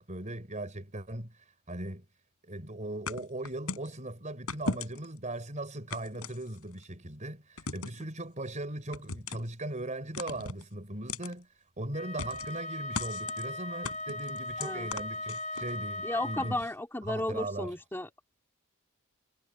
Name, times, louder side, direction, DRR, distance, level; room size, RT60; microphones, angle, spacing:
voice 1, 0.0-1.3 1.7-2.0 2.4-11.5 11.8-16.7 17.0-17.7, right 1 dB, 35° right, 4.8 m, -39 dB
sound 1, 3.1-3.9 4.5-5.2 5.9-6.8 7.6-8.0 8.9-9.5 10.1-10.6 11.1-11.3 12.2-12.6 12.9-13.5 13.8-15.7, left 3 dB, 85° left, 3.4 m, -38 dB
Wind instrument woodwind instrument, 11.9-16.7, left 1 dB, 35° left, 2.1 m, -38 dB
voice 2, 14.6-14.9 16.0-18.1, left 1 dB, 10° left, 2.3 m, -34 dB
head